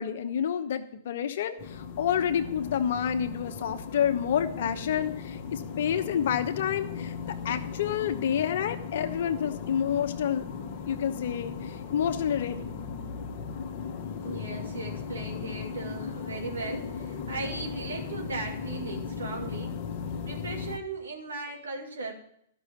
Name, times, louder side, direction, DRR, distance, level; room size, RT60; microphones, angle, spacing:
voice 1, 0.0-10.4 10.9-12.7, left 9 dB, 65° left, 8 dB, 1.0 m, -29 dB
sound 1, 1.6-20.8, left 6 dB, 45° left, 1.3 m, -37 dB
voice 2, 14.2-19.8 20.3-22.1, right 3 dB, 85° right, 1 dB, 2.6 m, -37 dB
13.0 x 6.2 x 7.1 m, 0.72 s
hypercardioid pair, 115°, 0 cm